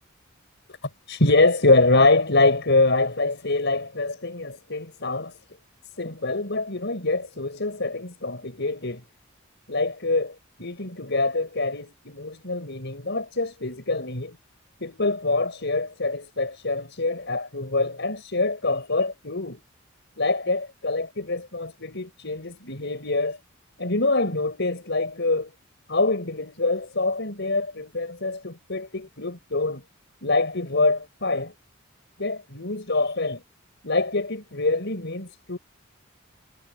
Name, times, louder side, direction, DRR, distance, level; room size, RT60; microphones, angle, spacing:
voice 1, 1.1-5.4 6.0-9.0 9.7-14.4 14.8-19.6 20.2-23.4 23.8-25.5 25.9-29.8 30.2-31.5 32.2-33.4 33.8-35.6, left 2 dB, 60° left, 5.6 m, -25 dB
head